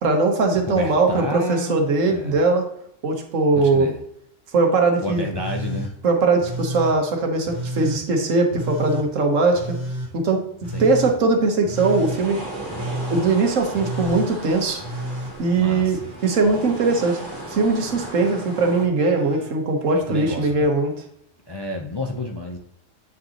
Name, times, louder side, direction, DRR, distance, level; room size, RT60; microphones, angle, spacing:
voice 1, 0.0-2.7 3.0-3.9 4.5-5.3 6.0-9.8 10.1-10.4 10.8-12.4 13.1-14.8 15.4-17.2 17.5-20.9, right 3 dB, 90° right, 3 dB, 1.5 m, -20 dB
voice 2, 0.7-1.8 2.1-2.4 3.6-4.0 5.0-5.9 10.7-11.0 15.6-16.0 20.1-20.7 21.5-22.6, left 2 dB, 30° left, 1 dB, 0.4 m, -30 dB
Telephone, 5.4-5.9 6.4-7.0 7.4-8.0 8.5-9.1 9.5-10.1 10.6-11.1 11.6-12.2 12.7-13.2 13.7-14.3 14.8-16.4 16.6-17.4 17.9-18.4 19.0-19.5 20.0-20.5 21.7-21.8, right 1 dB, 15° left, 3.0 m, -32 dB
sound 1, 11.8-18.9, right 2 dB, 60° right, 2.5 m, -35 dB
8.1 x 5.3 x 2.9 m, 0.70 s
omnidirectional pair, 1.3 m